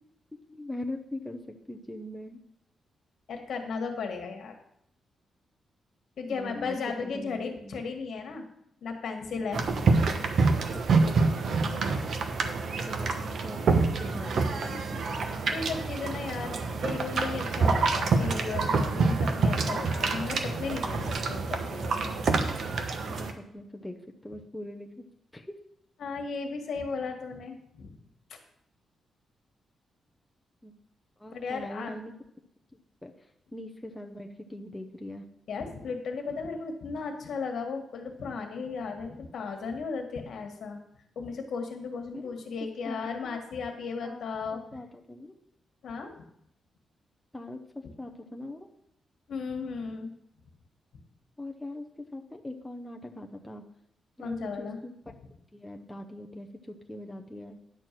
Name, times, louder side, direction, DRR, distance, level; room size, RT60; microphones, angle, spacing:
voice 1, 0.5-1.4 1.7-2.4 6.3-7.9 10.9-11.8 12.9-13.1 13.4-13.6 14.0-15.2 23.1-24.0 24.2-25.0 25.3-25.5 30.6-30.8 31.2-32.1 33.0-35.2 42.1-42.4 42.8-43.4 44.0-44.2 44.7-45.4 47.3-47.6 48.0-48.7 51.4-53.6 54.2-54.9 55.5-57.6, left 1 dB, 5° left, 2 dB, 0.7 m, -41 dB
voice 2, 3.3-4.5 6.2-8.5 8.8-10.1 15.5-22.2 26.0-27.9 28.3-28.4 31.3-32.0 35.5-40.8 41.1-44.6 45.8-46.1 49.3-50.1 54.2-54.8, left 4 dB, 65° left, 4 dB, 1.7 m, -35 dB
sound 1, 9.5-23.3, right 4 dB, 60° right, 1.0 m, -27 dB
10.5 x 4.6 x 7.5 m, 0.74 s
wide cardioid pair, 140°, 0 cm